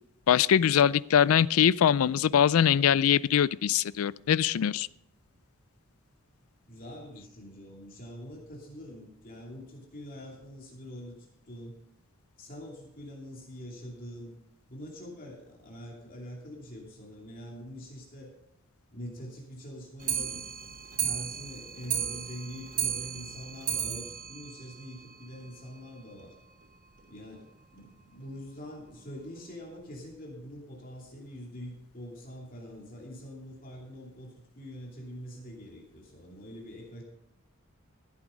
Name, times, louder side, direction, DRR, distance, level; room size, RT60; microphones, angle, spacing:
voice 1, 0.3-4.9, left 9 dB, 90° left, 20 dB, 0.4 m, -23 dB
voice 2, 6.7-11.8 12.4-14.3 14.7-18.3 18.9-20.4 21.0-26.3 27.1-37.0, equal, 40° left, -2 dB, 2.8 m, -44 dB
Clock, 20.0-25.5 25.8-25.9 26.2-26.3 26.6-26.7 27.0-27.1 27.8-27.9 28.6-28.7 29.4-29.5, right 9 dB, 40° right, 1.2 m, -34 dB
14.5 x 8.4 x 5.1 m, 0.82 s
head